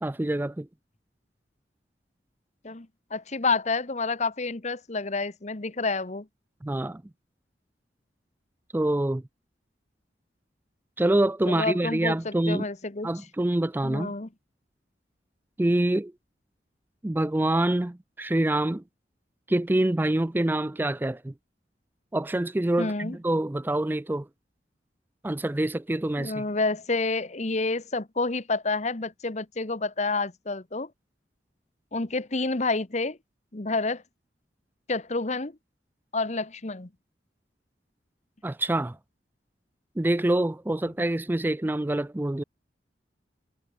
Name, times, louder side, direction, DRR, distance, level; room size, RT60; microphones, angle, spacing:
voice 1, 0.0-0.7 6.6-7.0 8.7-9.2 11.0-12.7 13.0-14.1 15.6-16.1 17.0-18.8 19.5-21.3 22.1-24.3 25.2-26.4 38.4-39.0 40.0-42.4, right 1 dB, 10° right, 0.4 m, -26 dB
voice 2, 2.6-6.3 11.5-13.1 13.8-14.3 22.8-23.2 26.2-30.9 31.9-33.2 33.5-34.0 34.9-35.6 36.1-36.9, left 3 dB, 40° left, 1.2 m, -29 dB
head